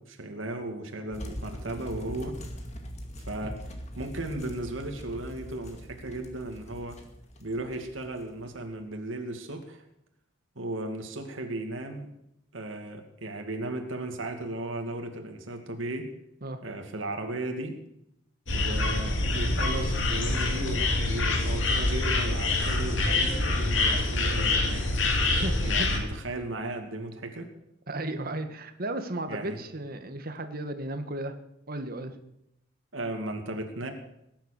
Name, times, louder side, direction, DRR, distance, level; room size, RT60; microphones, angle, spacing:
voice 1, 0.0-2.4 3.3-7.0 7.4-9.8 10.6-12.1 12.5-16.1 16.6-17.8 18.5-25.0 25.6-27.5 29.3-29.6 32.9-33.9, right 2 dB, 80° right, 4 dB, 2.4 m, -36 dB
sound 1, 1.1-8.7, equal, 35° left, 2.2 m, -42 dB
sound 2, 18.5-26.0, left 2 dB, 70° left, 3.0 m, -26 dB
voice 2, 25.3-26.1 27.9-31.3 31.7-32.2, right 1 dB, 50° right, 8 dB, 1.7 m, -35 dB
19.5 x 10.5 x 6.7 m, 0.81 s
head